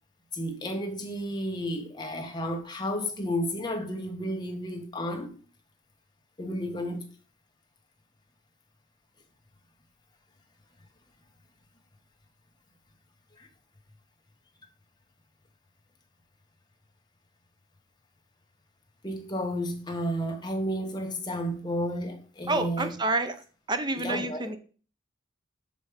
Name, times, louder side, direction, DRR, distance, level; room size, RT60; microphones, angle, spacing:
voice 1, 0.3-5.4 6.4-7.0 13.4-13.5 19.0-22.9 23.9-24.5, equal, 20° left, 1.2 m, -32 dB
voice 2, 22.5-23.4 23.7-24.6, right 2 dB, 20° right, 0.7 m, -28 dB
6.1 x 5.2 x 5.0 m
head